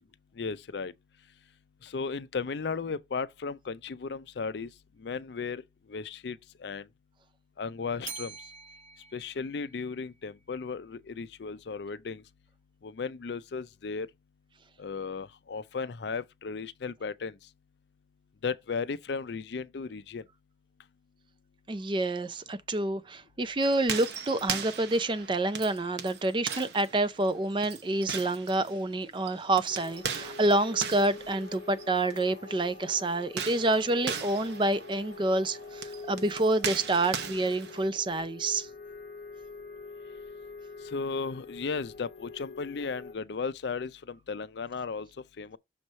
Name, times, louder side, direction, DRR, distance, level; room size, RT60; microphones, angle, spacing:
voice 1, 0.4-0.9 1.8-4.7 5.0-5.6 5.9-6.9 7.6-8.4 9.1-12.2 12.8-14.1 14.8-17.3 18.4-20.2 40.8-45.1 45.4-45.6, left 5 dB, 70° left, 0.5 m, -35 dB
Bell, 8.0-10.3, right 5 dB, 45° right, 0.9 m, -45 dB
voice 2, 21.7-38.7, right 2 dB, 25° right, 0.4 m, -28 dB
sound 1, 23.6-32.2 33.2-37.9, right 6 dB, 70° right, 0.8 m, -39 dB
sound 2, 29.7-43.1, left 4 dB, 50° left, 0.8 m, -45 dB
6.4 x 3.1 x 5.3 m
head